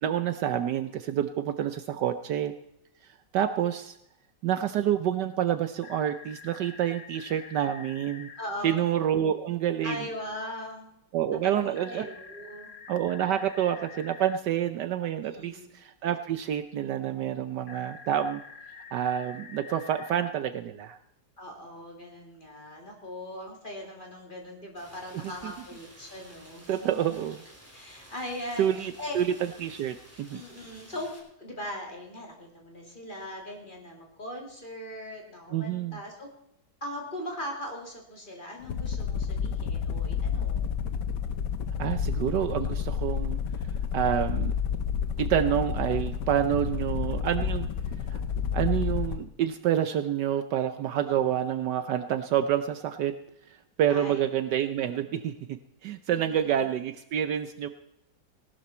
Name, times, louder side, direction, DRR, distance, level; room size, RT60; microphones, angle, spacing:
voice 1, 0.0-2.5 3.3-4.0 4.4-8.3 8.6-10.1 11.1-12.1 12.9-18.4 18.9-21.0 25.2-25.5 26.7-27.4 28.6-29.3 29.6-30.4 35.5-36.0 41.8-43.4 43.9-44.5 45.2-47.7 48.1-48.2 48.5-53.1 53.8-57.7, right 10 dB, 70° right, 10 dB, 1.3 m, -28 dB
sound 1, 5.8-8.4 11.7-14.4 17.7-20.3, left 6 dB, 50° left, 1.2 m, -47 dB
voice 2, 8.4-8.8 9.8-10.9 11.4-12.7 15.2-15.7 21.4-27.2 27.7-29.2 30.3-36.3 36.8-40.6 51.1-51.3 53.9-54.2 56.1-56.7, left 1 dB, 25° left, 0 dB, 3.0 m, -40 dB
Rain, 24.8-31.2, equal, 5° right, 3.1 m, -52 dB
sound 2, 38.6-49.2, left 7 dB, 70° left, 1.5 m, -30 dB
18.5 x 12.0 x 4.3 m, 0.78 s
omnidirectional pair, 2.0 m